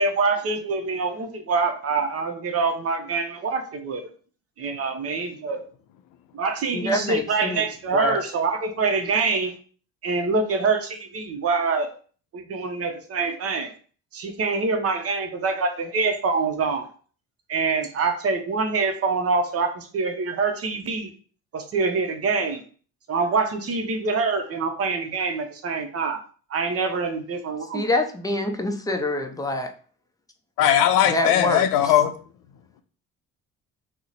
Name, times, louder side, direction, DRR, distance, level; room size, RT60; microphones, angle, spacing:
voice 1, 0.0-4.0 4.6-5.6 6.3-9.5 10.0-11.9 12.3-13.7 14.1-16.9 17.5-21.1 21.5-22.6 23.1-26.2 26.5-27.9, right 4 dB, 45° right, 6 dB, 0.6 m, -25 dB
voice 2, 6.7-7.6 7.9-8.2 27.7-29.7 31.1-31.9, left 1 dB, 10° left, 5 dB, 0.4 m, -26 dB
voice 3, 30.6-32.1, left 10 dB, 90° left, 9 dB, 0.5 m, -19 dB
2.8 x 2.1 x 3.8 m, 0.42 s
cardioid pair, 95°, 34 cm